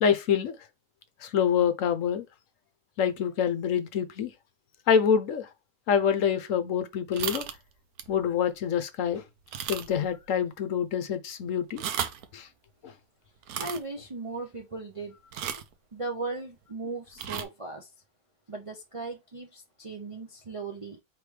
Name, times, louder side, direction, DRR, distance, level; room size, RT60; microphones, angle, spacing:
voice 1, 0.0-0.6 1.2-2.2 3.0-4.3 4.9-5.5 5.9-7.5 8.1-9.2 9.7-11.8 12.3-12.5 12.8-12.9, left 8 dB, 65° left, 1.0 m, -26 dB
sound 1, 7.1-7.6 8.0-8.2 8.6-8.7 9.5-10.1 10.4-10.5 11.6-12.3 13.4-13.8 15.3-15.7 17.1-17.4, right 9 dB, 80° right, 1.1 m, -34 dB
voice 2, 13.6-15.1 15.9-17.9 18.5-21.0, right 3 dB, 35° right, 0.5 m, -37 dB
4.9 x 3.3 x 3.2 m
omnidirectional pair, 1.6 m